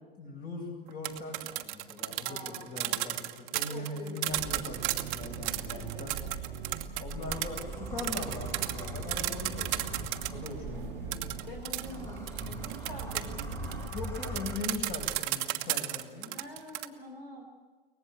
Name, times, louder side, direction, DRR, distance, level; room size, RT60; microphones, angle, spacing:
voice 1, 0.2-6.1 7.0-11.2 13.9-16.3, left 3 dB, 30° left, 1 dB, 7.9 m, -40 dB
sound 1, 0.9-10.5 11.1-16.9, right 18 dB, 40° right, 1.3 m, -34 dB
voice 2, 2.2-3.2 3.7-4.4 5.7-6.4 10.7-11.2 11.5-13.7 16.2-17.4, left 1 dB, 75° left, 2 dB, 4.6 m, -47 dB
sound 2, 4.3-13.9, right 9 dB, 60° right, 1.3 m, -43 dB
sound 3, 4.4-15.2, equal, 10° left, 2.8 m, -42 dB
23.5 x 19.0 x 7.8 m, 1.4 s
figure-of-eight pair, 100°, 29 cm